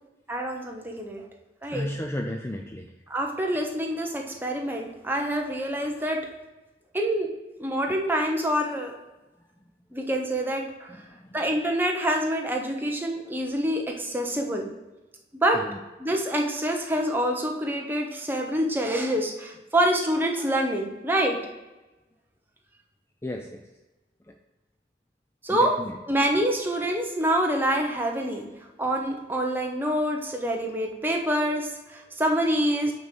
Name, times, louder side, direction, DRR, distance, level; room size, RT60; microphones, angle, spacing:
voice 1, 0.3-1.2 1.6-1.9 3.1-6.2 6.9-7.3 7.6-8.9 9.9-10.9 11.3-14.7 15.4-15.6 16.0-21.4 25.4-25.7 26.1-28.5 28.8-32.9, right 1 dB, 10° right, 1 dB, 1.0 m, -26 dB
voice 2, 1.7-2.9 10.9-11.4 15.5-15.8 23.2-23.7 24.3-24.4 25.5-26.0, left 1 dB, 15° left, 3 dB, 0.4 m, -34 dB
6.2 x 5.3 x 6.2 m, 1.1 s
head